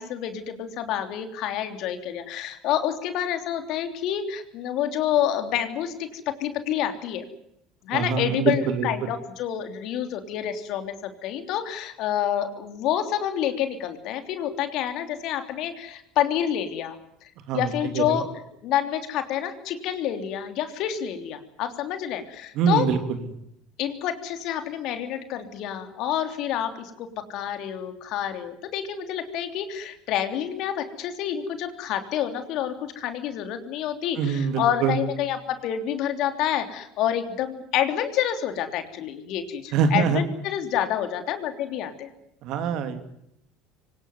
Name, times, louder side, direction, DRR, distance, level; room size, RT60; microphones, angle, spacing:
voice 1, 0.0-7.2 7.8-17.3 17.5-22.9 23.8-42.1, left 10 dB, 60° left, 7 dB, 3.2 m, -28 dB
voice 2, 7.9-8.9 17.5-17.7 17.9-18.2 22.6-23.0 34.2-35.0 39.7-40.2 42.4-43.0, right 7 dB, 60° right, 8 dB, 2.9 m, -24 dB
25.0 x 18.5 x 9.5 m, 0.78 s
hypercardioid pair, 75°, 0 cm